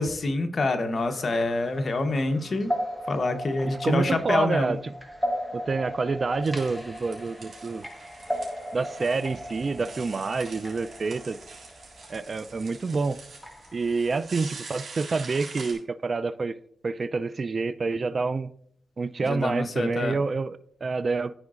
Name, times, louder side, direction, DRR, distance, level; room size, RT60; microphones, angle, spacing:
voice 1, 0.0-2.7 3.1-4.8 19.2-20.2, left 2 dB, 50° left, 0.9 m, -26 dB
sound 1, 1.0-14.3, equal, 5° left, 1.3 m, -37 dB
voice 2, 3.8-4.8 5.5-7.9 8.7-11.4 12.1-13.2 13.7-16.5 16.8-18.5 19.0-21.3, right 4 dB, 45° right, 0.3 m, -28 dB
sound 2, 6.4-15.7, right 4 dB, 70° right, 3.2 m, -45 dB
13.0 x 4.8 x 2.5 m
cardioid pair, 80°, 0 cm